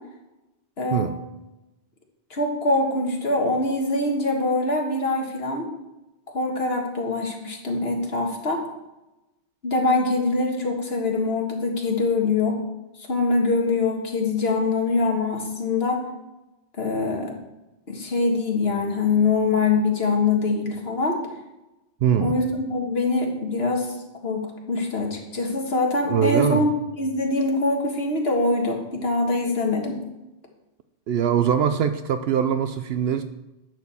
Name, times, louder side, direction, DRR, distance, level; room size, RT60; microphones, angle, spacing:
voice 1, 0.8-1.1 2.3-5.7 6.3-8.6 9.6-12.6 13.1-16.0 16.8-17.3 17.9-21.2 22.2-23.9 24.2-30.0, left 3 dB, 65° left, 1 dB, 1.8 m, -23 dB
voice 2, 22.0-22.3 26.1-26.7 31.1-33.2, right 8 dB, 70° right, 10 dB, 0.8 m, -22 dB
10.5 x 4.7 x 7.1 m, 0.98 s
omnidirectional pair, 1.1 m